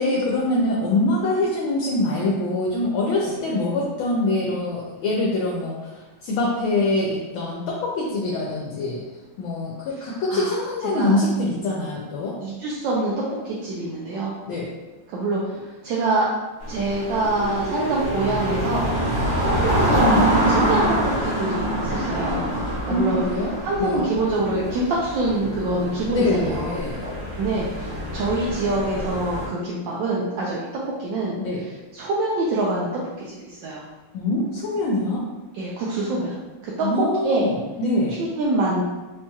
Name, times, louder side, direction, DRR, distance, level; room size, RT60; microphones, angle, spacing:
voice 1, 0.0-9.0 9.4-12.4 14.4-14.7 22.9-23.5 23.8-24.0 26.0-27.1 31.4-31.6 34.1-35.2 36.8-38.2, left 2 dB, 75° left, -3 dB, 1.3 m, -24 dB
voice 2, 12.4-14.4 15.1-15.6 15.8-16.3 16.7-19.2 19.8-20.9 21.2-22.5 22.8-23.2 23.6-26.8 27.4-31.4 31.9-32.9 33.2-33.9 35.5-36.4 36.6-36.9 37.2-37.5 38.2-38.8, right 2 dB, 75° right, -5 dB, 1.1 m, -25 dB
sound 1, 16.6-29.5, right 1 dB, 60° right, 1.7 m, -25 dB
4.2 x 2.9 x 2.3 m, 1.1 s
omnidirectional pair, 2.4 m